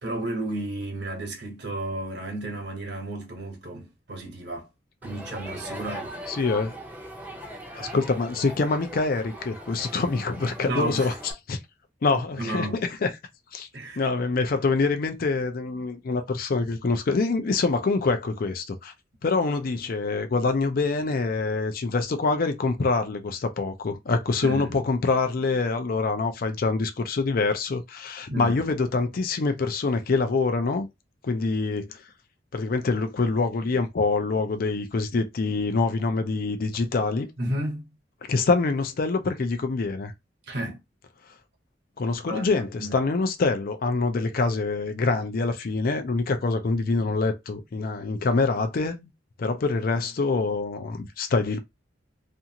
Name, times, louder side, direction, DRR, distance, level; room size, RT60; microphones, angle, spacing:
voice 1, 0.0-4.7 5.0-6.2 10.6-11.1 12.3-12.8 13.7-14.0 24.4-24.8 28.3-28.6 37.4-37.9 40.5-40.8 42.3-42.5 42.8-42.9, right 1 dB, 65° right, 1.1 m, -32 dB
Crowd, 5.0-11.3, equal, 10° right, 0.6 m, -40 dB
voice 2, 6.3-6.8 7.8-11.1 11.5-11.6 12.0-13.1 13.5-13.7 14.0-18.9 19.2-30.9 31.2-32.0 32.5-37.3 38.3-40.1 42.0-49.1 49.4-51.6, left 3 dB, 50° left, 0.5 m, -25 dB
2.6 x 2.4 x 2.8 m
head